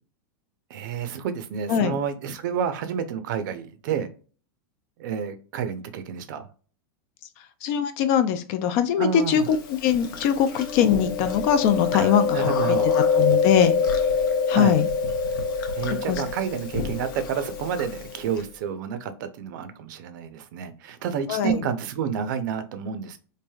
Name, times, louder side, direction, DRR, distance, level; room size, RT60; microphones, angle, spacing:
voice 1, 0.7-4.1 5.0-6.5 9.0-9.5 11.9-12.9 14.5-14.8 15.7-23.2, right 7 dB, 60° right, 10 dB, 0.5 m, -29 dB
voice 2, 7.6-13.8 14.5-14.9 16.1-16.2 21.3-21.6, left 8 dB, 45° left, 11 dB, 0.4 m, -22 dB
Chewing mastication, 9.5-18.4, left 5 dB, 70° left, 0.7 m, -25 dB
3.2 x 2.5 x 2.3 m, 0.38 s
supercardioid pair, 155°, 12 cm